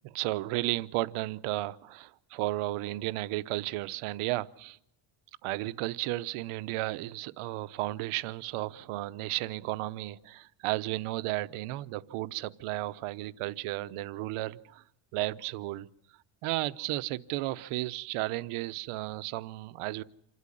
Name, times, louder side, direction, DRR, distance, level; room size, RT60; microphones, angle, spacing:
voice 1, 0.0-4.8 5.4-14.8 15.1-15.9 16.4-20.0, right 18 dB, 85° right, 0.9 m, -33 dB
27.5 x 12.5 x 9.9 m
cardioid pair, 130°, 50 cm